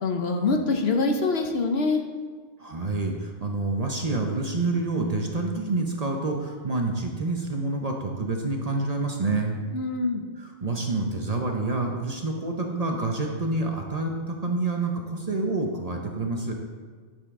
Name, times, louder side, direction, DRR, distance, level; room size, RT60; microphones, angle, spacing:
voice 1, 0.0-2.0 9.7-10.2, left 3 dB, 60° left, 4 dB, 1.0 m, -24 dB
voice 2, 2.6-9.6 10.4-16.5, right 2 dB, 35° right, 1 dB, 0.8 m, -28 dB
10.5 x 7.0 x 3.6 m, 1.6 s
omnidirectional pair, 1.2 m